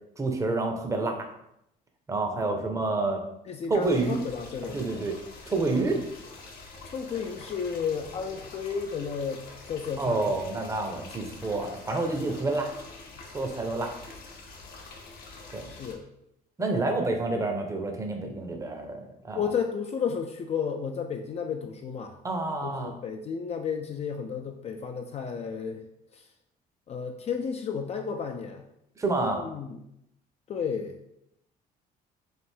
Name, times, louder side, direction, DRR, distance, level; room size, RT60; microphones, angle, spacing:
voice 1, 0.2-1.3 2.1-3.2 3.7-4.2 4.7-5.1 5.5-6.1 10.0-12.7 13.3-13.9 15.5-15.7 16.6-19.5 22.2-22.9 29.0-29.4, right 3 dB, 20° right, 4 dB, 0.6 m, -28 dB
voice 2, 3.5-5.0 6.9-10.2 12.2-12.4 15.7-16.0 19.4-22.2 22.6-25.8 26.1-26.2 26.9-28.6 29.2-29.8 30.5-31.2, left 6 dB, 40° left, 4 dB, 0.4 m, -33 dB
sound 1, 3.8-15.9, left 3 dB, 65° left, 0.9 m, -46 dB
3.4 x 2.6 x 4.4 m, 0.80 s
cardioid pair, 110°, 17 cm